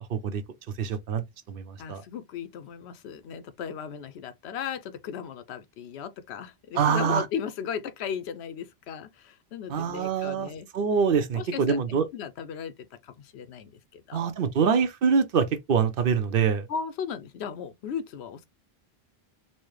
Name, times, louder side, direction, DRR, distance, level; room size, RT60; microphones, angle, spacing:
voice 1, 0.1-0.4 0.8-2.0 6.7-7.3 9.7-12.1 14.1-16.7, right 6 dB, 65° right, 0.8 m, -25 dB
voice 2, 1.8-10.7 11.4-12.7 13.0-14.2 16.7-18.4, left 7 dB, 85° left, 0.9 m, -36 dB
4.1 x 2.1 x 3.1 m
omnidirectional pair, 1.1 m